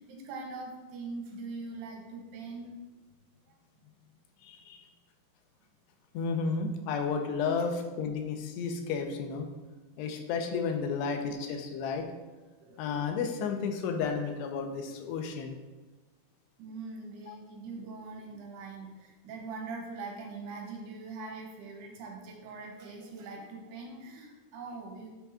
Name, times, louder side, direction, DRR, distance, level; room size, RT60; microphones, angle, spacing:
voice 1, 0.0-2.7 11.0-11.2 12.6-12.8 14.7-14.8 16.6-25.1, right 3 dB, 75° right, 0 dB, 3.1 m, -42 dB
voice 2, 4.4-4.8 6.1-9.5 10.0-12.1 12.8-15.6 17.3-17.4, left 5 dB, 90° left, 4 dB, 2.9 m, -32 dB
9.4 x 3.6 x 5.7 m, 1.2 s
omnidirectional pair, 4.8 m